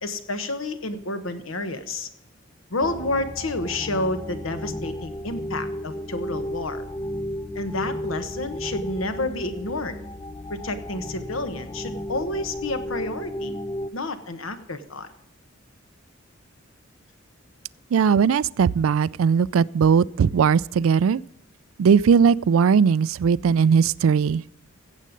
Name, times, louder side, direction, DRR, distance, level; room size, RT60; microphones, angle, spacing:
voice 1, 0.0-2.1 2.7-6.8 7.5-10.0 10.5-13.5 13.9-15.1, left 2 dB, 85° left, 1.3 m, -30 dB
sound 1, 2.8-13.9, left 1 dB, 15° left, 0.3 m, -34 dB
voice 2, 17.9-21.2 21.8-24.4, right 6 dB, 85° right, 0.4 m, -19 dB
16.0 x 7.6 x 5.3 m
head